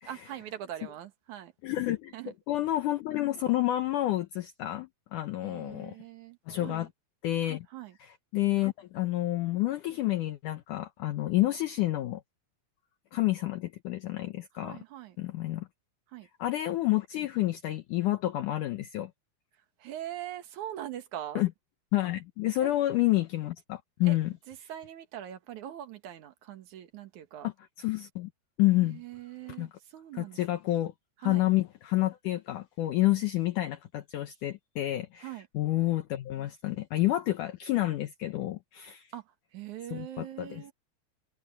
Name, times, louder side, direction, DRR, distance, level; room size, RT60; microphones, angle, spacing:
voice 1, 0.1-1.5 2.1-2.3 5.4-6.9 7.7-8.0 14.5-15.2 16.1-16.3 19.8-21.4 22.6-22.7 24.0-24.2 24.5-27.5 28.8-30.4 31.2-31.5 35.2-35.5 39.1-40.7, right 12 dB, 60° right, 2.3 m, -42 dB
voice 2, 1.6-2.1 2.5-5.9 6.5-6.9 7.2-7.7 8.0-12.2 13.1-14.8 15.2-15.7 16.4-19.1 21.4-21.5 21.9-24.3 27.4-27.5 27.8-28.3 28.6-29.0 29.6-29.7 30.2-30.9 31.2-35.3 35.5-39.1 39.9-40.6, left 16 dB, 75° left, 1.8 m, -29 dB
omnidirectional pair, 4.9 m